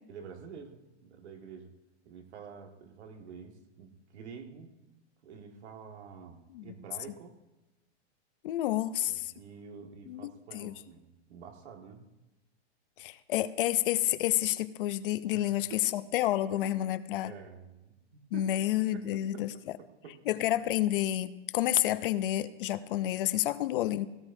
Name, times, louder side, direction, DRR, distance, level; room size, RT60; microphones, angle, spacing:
voice 1, 0.1-1.7 2.1-4.7 5.2-7.4 9.1-12.1 15.3-15.9 17.2-18.5 18.9-20.3, right 6 dB, 75° right, 4 dB, 1.8 m, -48 dB
voice 2, 8.4-9.3 10.1-10.7 13.0-17.3 18.3-19.5 20.3-24.1, left 13 dB, 50° left, 14 dB, 0.6 m, -29 dB
17.0 x 16.0 x 2.7 m, 1.0 s
supercardioid pair, 160°, 34 cm